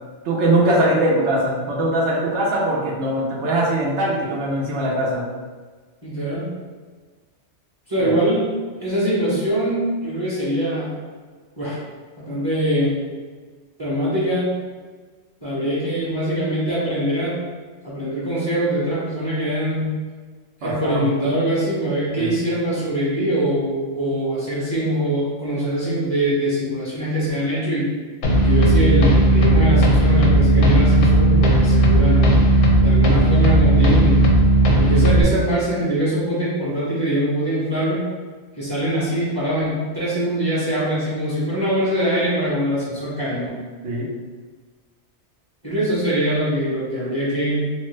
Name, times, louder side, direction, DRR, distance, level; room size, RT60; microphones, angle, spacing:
voice 1, 0.2-5.2 8.0-8.2 20.6-21.1 22.2-22.4 43.8-44.1, right 1 dB, 85° right, -4 dB, 0.9 m, -21 dB
voice 2, 6.0-6.5 7.9-8.5 8.8-10.9 11.6-11.8 12.2-12.9 13.8-14.5 15.4-17.4 17.8-20.0 20.6-27.9 28.4-32.3 32.8-34.2 34.8-38.0 38.6-43.6 45.6-47.7, right 1 dB, 25° right, -9 dB, 0.8 m, -23 dB
sound 1, 28.2-35.2, right 1 dB, 85° left, 0.9 m, -15 dB
3.1 x 2.1 x 3.1 m, 1.5 s
omnidirectional pair, 1.2 m